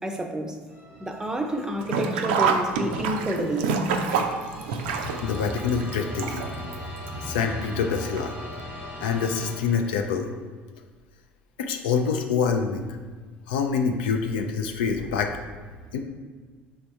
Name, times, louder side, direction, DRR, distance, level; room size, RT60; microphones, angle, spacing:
voice 1, 0.0-0.6 1.0-3.7, right 1 dB, 10° right, 3 dB, 0.5 m, -29 dB
sound 1, 0.7-10.2, left 1 dB, 80° left, 1.4 m, -39 dB
Sink (filling or washing), 1.8-6.7 7.1-7.2 8.2-8.3 8.6-8.7, right 5 dB, 65° right, 0.4 m, -26 dB
voice 2, 5.2-6.5 7.2-8.3 9.0-10.3 11.6-12.9 13.5-15.4 15.9-16.0, left 6 dB, 65° left, 4 dB, 0.4 m, -26 dB
3.4 x 3.4 x 4.2 m, 1.5 s
figure-of-eight pair, 60°, 6 cm